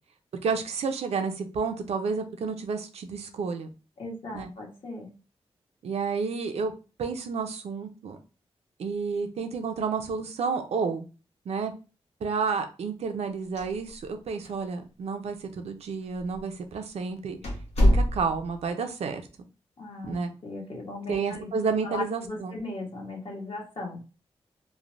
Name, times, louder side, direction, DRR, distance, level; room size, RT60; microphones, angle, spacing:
voice 1, 0.4-3.7 4.3-4.5 5.8-6.7 7.0-8.2 8.8-11.1 11.5-11.7 12.2-17.4 17.8-19.2 20.1-20.3 21.1-22.6, right 5 dB, 80° right, 6 dB, 0.5 m, -30 dB
voice 2, 4.0-5.1 19.8-20.2 20.4-21.5 21.8-24.0, left 2 dB, 55° left, -1 dB, 1.1 m, -37 dB
sound 1, 13.4-14.2 14.4-14.5 15.3-15.4 16.2-16.4 16.8-16.9 17.4-18.6, equal, 85° left, 0.9 m, -24 dB
3.2 x 2.1 x 2.5 m, 0.32 s
wide cardioid pair, 95°, 11 cm